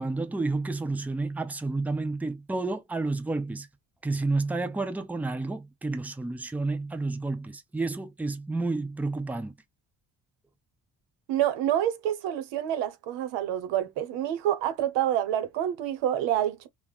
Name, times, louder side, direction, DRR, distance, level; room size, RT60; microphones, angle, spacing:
voice 1, 0.0-3.7 4.0-9.5, right 3 dB, 5° right, 0.5 m, -30 dB
voice 2, 11.3-16.7, right 11 dB, 80° right, 0.7 m, -27 dB
3.4 x 2.1 x 2.2 m
supercardioid pair, 60°, 44 cm